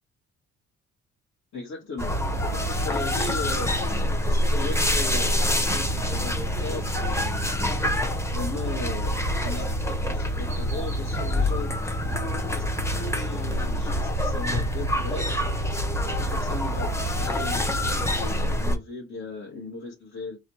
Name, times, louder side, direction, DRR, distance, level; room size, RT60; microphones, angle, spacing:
voice 1, 1.5-3.7 4.2-5.5 5.7-7.5 8.3-11.7 12.0-12.1 12.5-12.6 12.9-15.3 16.0-20.4, left 3 dB, 65° left, -3 dB, 1.2 m, -37 dB
sound 1, 2.0-18.8, equal, 10° left, 0.7 m, -26 dB
4.0 x 2.1 x 2.8 m, 0.23 s
cardioid pair, 90°, 30 cm